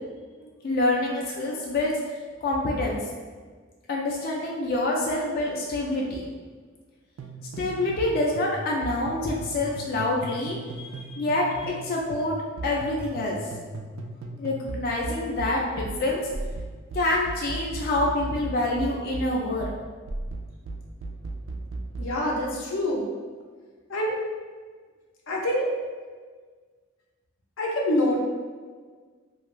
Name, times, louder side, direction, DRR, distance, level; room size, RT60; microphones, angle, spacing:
voice 1, 0.4-1.9 2.4-3.0 3.9-6.2 7.6-12.4 12.6-13.4 14.3-16.2 16.9-19.7, left 2 dB, 50° left, -2 dB, 0.3 m, -26 dB
sound 1, 7.2-8.1 8.4-11.8 12.1-22.2, right 2 dB, 75° right, 0.3 m, -36 dB
voice 2, 22.0-23.0 23.9-24.1 25.3-25.7 27.6-28.2, left 1 dB, 90° left, -2 dB, 0.6 m, -25 dB
2.5 x 2.3 x 3.0 m, 1.5 s
head